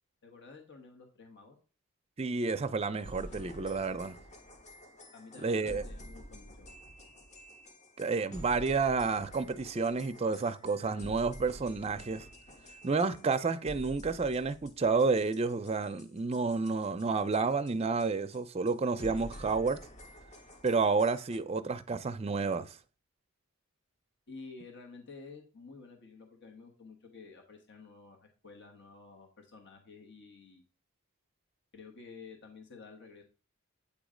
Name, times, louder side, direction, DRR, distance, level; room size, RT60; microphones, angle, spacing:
voice 1, 0.2-1.6 5.1-6.8 24.3-30.6 31.7-33.2, left 4 dB, 55° left, 1.2 m, -51 dB
voice 2, 2.2-4.2 5.4-5.8 8.0-12.2 12.8-19.8 20.6-22.8, right 4 dB, 30° right, 0.4 m, -30 dB
sound 1, 3.0-17.7 18.0-18.1 18.3-18.4 18.7-18.8 19.0-21.4, equal, 35° left, 0.8 m, -49 dB
8.5 x 3.1 x 5.0 m
head